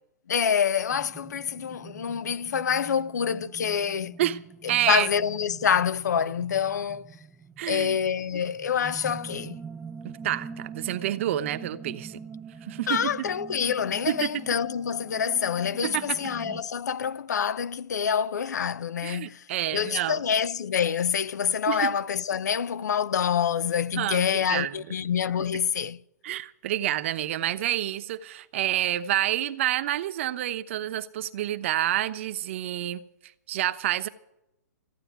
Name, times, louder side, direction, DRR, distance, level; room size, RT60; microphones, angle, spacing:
voice 1, 0.3-4.1 4.9-7.0 7.7-9.6 12.9-19.4 19.7-26.0, left 7 dB, 75° left, 0.6 m, -26 dB
sound 1, 0.9-16.6, right 5 dB, 5° right, 0.4 m, -44 dB
voice 2, 4.7-5.1 7.6-8.0 10.0-12.2 12.6-13.3 14.1-14.3 15.8-16.2 19.0-20.2 21.7-21.9 23.9-24.9 26.2-33.0 33.5-34.1, right 13 dB, 45° right, 0.9 m, -28 dB
15.0 x 9.1 x 9.3 m
hypercardioid pair, 150°, 9 cm